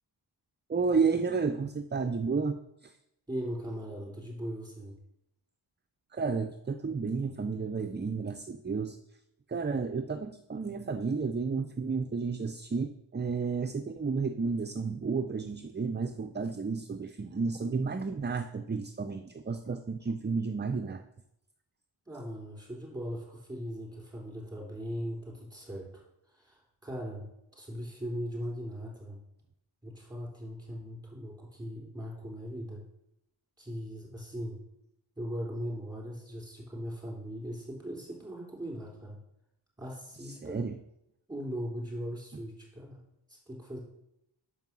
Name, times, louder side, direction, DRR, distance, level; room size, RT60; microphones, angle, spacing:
voice 1, 0.7-3.0 6.1-9.2 9.5-21.0 40.2-40.8, right 4 dB, 25° right, 8 dB, 0.4 m, -32 dB
voice 2, 3.3-5.0 22.1-27.3 27.5-29.2 29.8-32.8 33.6-34.6 35.2-39.2 39.8-40.6 41.3-43.0 43.3-43.8, equal, 10° right, -3 dB, 3.6 m, -39 dB
6.5 x 5.3 x 6.0 m, 0.82 s
wide cardioid pair, 50°, 49 cm